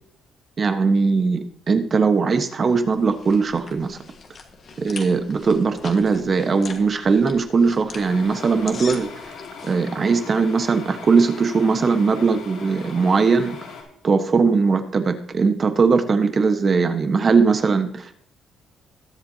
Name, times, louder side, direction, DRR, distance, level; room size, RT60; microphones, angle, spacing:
voice 1, 0.6-4.0 4.8-9.1 9.6-13.6 14.0-18.2, right 4 dB, 30° right, 8 dB, 1.2 m, -20 dB
sound 1, 2.7-9.8, left 5 dB, 40° left, 1.5 m, -41 dB
sound 2, 7.9-13.8, left 5 dB, 75° left, 3.6 m, -39 dB
20.5 x 7.7 x 2.8 m, 0.64 s
cardioid pair, 145°, 0 cm